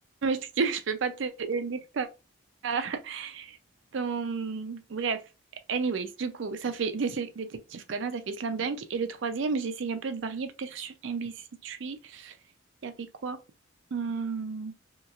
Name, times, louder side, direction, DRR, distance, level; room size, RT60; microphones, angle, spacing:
voice 1, 0.2-2.1 2.6-3.6 3.9-5.2 5.7-12.3 12.8-13.4 13.9-14.7, right 5 dB, 65° right, 0.4 m, -32 dB
2.9 x 2.8 x 2.4 m
head